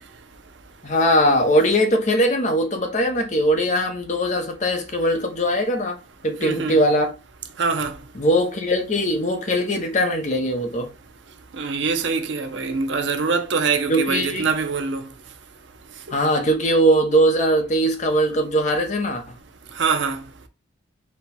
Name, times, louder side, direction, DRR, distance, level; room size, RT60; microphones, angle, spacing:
voice 1, 0.8-6.0 6.2-7.1 8.1-10.9 13.9-14.5 16.1-19.3, equal, 40° left, 0.8 m, -20 dB
voice 2, 6.4-6.8 7.6-8.0 11.6-15.1 19.8-20.2, right 4 dB, 75° right, 0.7 m, -24 dB
4.4 x 2.2 x 4.1 m
head